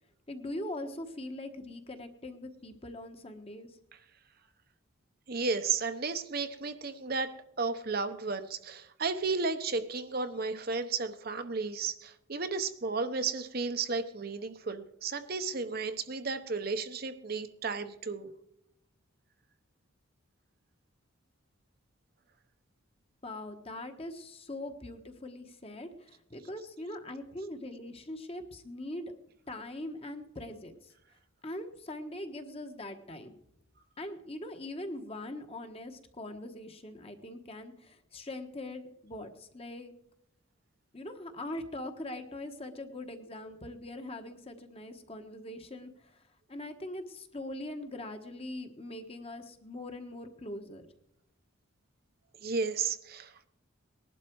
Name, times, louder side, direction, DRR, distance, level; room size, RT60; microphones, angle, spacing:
voice 1, 0.3-3.8 23.2-29.1 29.5-30.9 31.4-33.3 34.0-39.9 40.9-46.2 46.5-50.9, left 1 dB, 30° left, 6 dB, 1.3 m, -42 dB
voice 2, 5.3-18.3 52.4-53.5, right 4 dB, 45° right, 9 dB, 0.9 m, -33 dB
19.5 x 11.5 x 4.7 m, 0.79 s
head